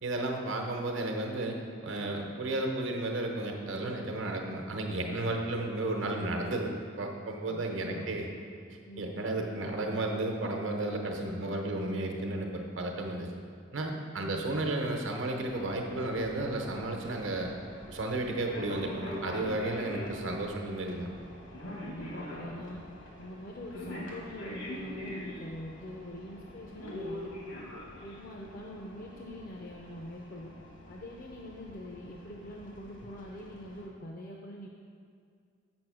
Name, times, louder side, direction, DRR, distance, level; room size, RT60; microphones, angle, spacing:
voice 1, 0.0-1.6 1.8-6.7 7.0-8.3 9.0-13.3 13.7-17.5 17.9-21.1, right 2 dB, 75° right, 2 dB, 1.0 m, -33 dB
voice 2, 7.5-8.1 8.8-9.0 14.2-14.4 21.8-22.8 23.2-27.6 28.0-30.5 30.9-34.7, left 1 dB, 45° left, 0 dB, 0.6 m, -44 dB
sound 1, 15.4-33.9, left 1 dB, 70° left, 1.5 m, -44 dB
6.9 x 6.2 x 6.2 m, 2.3 s
head